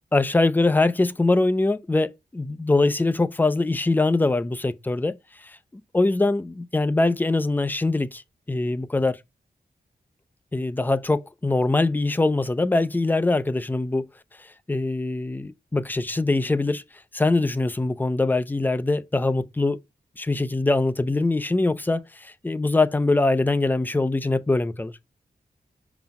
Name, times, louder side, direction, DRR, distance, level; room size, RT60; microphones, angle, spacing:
voice 1, 0.1-5.2 5.4-5.6 5.9-8.2 8.5-9.2 10.5-14.1 14.7-16.8 17.1-19.8 20.2-24.9, left 2 dB, 10° left, 0.4 m, -23 dB
5.2 x 4.0 x 5.7 m
wide cardioid pair, 170°, 16 cm